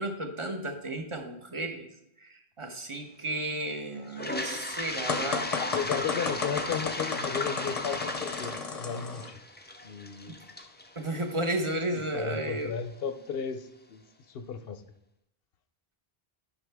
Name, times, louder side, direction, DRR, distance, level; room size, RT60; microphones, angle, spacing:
voice 1, 0.0-1.9 2.2-5.5 10.2-10.4 11.0-12.7, right 1 dB, 30° right, 5 dB, 0.9 m, -33 dB
Toilet flush, 4.1-12.0, left 2 dB, 15° left, 0.4 m, -36 dB
sound 1, 5.1-9.3, left 5 dB, 40° left, 0.7 m, -33 dB
voice 2, 5.6-9.4 9.8-10.3 11.9-14.0 14.3-14.8, left 7 dB, 70° left, 10 dB, 0.8 m, -35 dB
9.6 x 5.7 x 3.5 m, 0.81 s
omnidirectional pair, 1.0 m